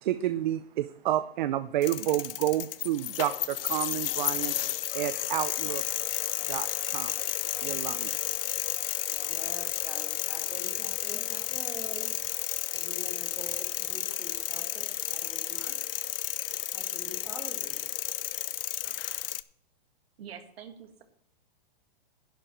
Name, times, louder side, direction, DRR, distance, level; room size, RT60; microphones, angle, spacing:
voice 1, 0.0-4.5 4.9-5.8 6.5-7.1 7.6-8.1, right 13 dB, 50° right, 13 dB, 0.6 m, -30 dB
sound 1, 1.8-19.4, left 13 dB, 70° left, 0.6 m, -32 dB
voice 2, 9.1-12.1 12.7-15.8 16.7-17.9, right 1 dB, 5° right, 2 dB, 1.6 m, -45 dB
voice 3, 20.2-21.0, right 8 dB, 85° right, 6 dB, 2.0 m, -45 dB
11.5 x 5.3 x 7.2 m, 0.68 s
hypercardioid pair, 155°, 30 cm